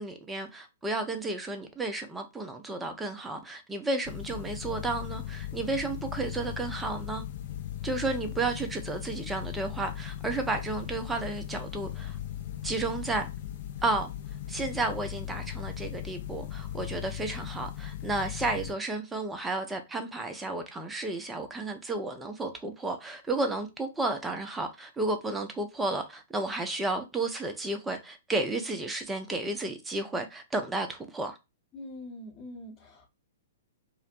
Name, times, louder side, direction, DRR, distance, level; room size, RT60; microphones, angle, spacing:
voice 1, 0.0-7.2 7.8-12.2 12.6-13.3 13.8-14.1 14.5-31.4, right 2 dB, 10° right, 0.5 m, -32 dB
sound 1, 4.0-18.7, left 11 dB, 50° left, 0.4 m, -38 dB
voice 2, 31.7-33.1, left 1 dB, 25° left, 0.8 m, -43 dB
2.4 x 2.1 x 2.7 m
figure-of-eight pair, 110°, 0 cm